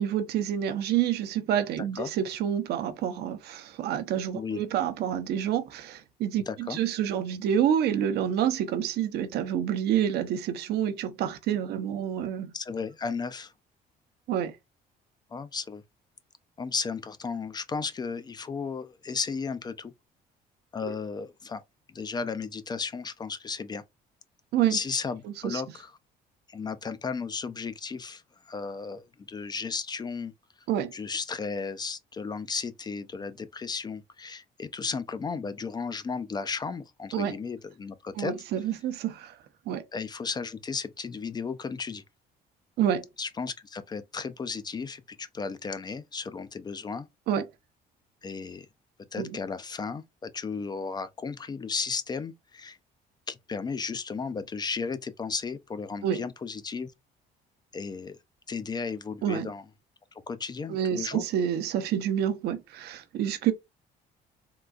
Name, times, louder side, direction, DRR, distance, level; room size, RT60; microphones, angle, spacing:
voice 1, 0.0-12.5 14.3-14.5 20.8-20.9 24.5-24.8 25.4-25.6 30.7-30.9 37.1-37.3 38.2-39.3 39.7-39.8 42.8-43.1 47.3-47.4 49.2-49.3 56.0-56.2 59.2-59.5 60.7-63.5, right 9 dB, 75° right, 0.6 m, -28 dB
voice 2, 6.5-6.8 12.5-13.5 15.3-15.8 16.6-19.9 20.7-21.6 21.9-23.8 24.7-25.9 26.5-30.3 30.9-38.3 39.9-42.0 43.2-47.1 48.2-48.7 49.1-52.8 53.3-56.9 57.7-58.2 58.5-59.6 60.3-61.2, left 5 dB, 25° left, 0.4 m, -34 dB
3.7 x 2.3 x 2.4 m
cardioid pair, 110°, 17 cm